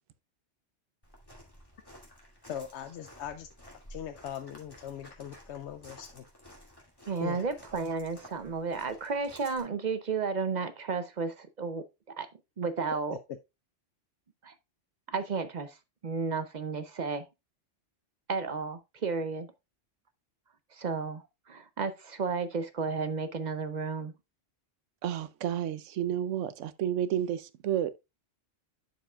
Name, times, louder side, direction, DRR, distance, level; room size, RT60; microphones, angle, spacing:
Walk footsteps, 1.0-9.6, equal, 20° left, 2.4 m, -53 dB
voice 1, 2.5-3.5 3.9-6.2 7.2-7.5, left 9 dB, 70° left, 0.8 m, -40 dB
voice 2, 7.1-11.8 12.2-12.3 12.6-13.2 14.4-14.5 15.1-15.8 16.0-17.2 18.3-19.5 20.7-24.1, right 4 dB, 50° right, 0.6 m, -33 dB
voice 3, 25.0-27.9, right 10 dB, 85° right, 0.9 m, -31 dB
11.5 x 4.8 x 2.3 m
omnidirectional pair, 1.2 m